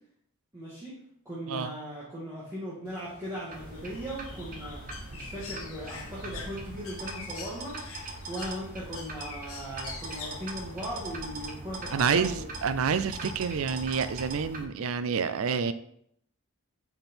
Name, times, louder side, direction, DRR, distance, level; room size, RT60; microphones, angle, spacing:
voice 1, 0.5-1.0 1.3-4.8 5.1-7.8 8.3-12.4, equal, 15° right, -9 dB, 1.8 m, -38 dB
Bird, 2.9-11.0, left 5 dB, 70° left, 1.2 m, -46 dB
sound 1, 3.5-14.6, right 2 dB, 40° right, 1.0 m, -41 dB
voice 2, 11.9-15.7, right 6 dB, 65° right, 12 dB, 0.4 m, -28 dB
6.0 x 5.2 x 4.4 m, 0.70 s
head